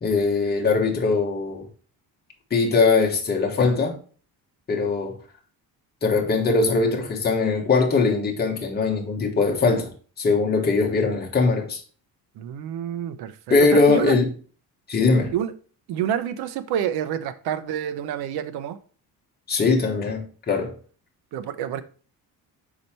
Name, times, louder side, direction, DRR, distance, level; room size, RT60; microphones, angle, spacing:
voice 1, 0.0-1.6 2.5-3.9 4.7-5.1 6.0-9.9 10.2-11.8 13.5-14.3 14.9-15.3 19.5-20.7, left 4 dB, 25° left, 1.3 m, -21 dB
voice 2, 12.4-14.2 15.1-15.5 15.9-18.8 21.3-21.8, right 9 dB, 90° right, 0.8 m, -28 dB
5.4 x 5.0 x 4.3 m
cardioid pair, 165°, 37 cm